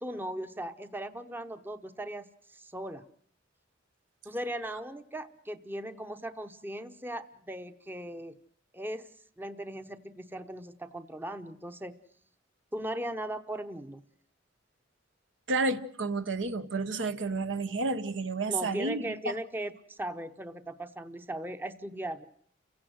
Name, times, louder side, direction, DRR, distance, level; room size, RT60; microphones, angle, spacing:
voice 1, 0.0-3.1 4.2-8.4 8.7-9.1 9.4-12.0 12.7-14.0 18.5-22.3, right 1 dB, 10° right, 0.9 m, -38 dB
voice 2, 15.5-19.3, right 3 dB, 70° right, 1.1 m, -31 dB
30.0 x 16.5 x 6.3 m
head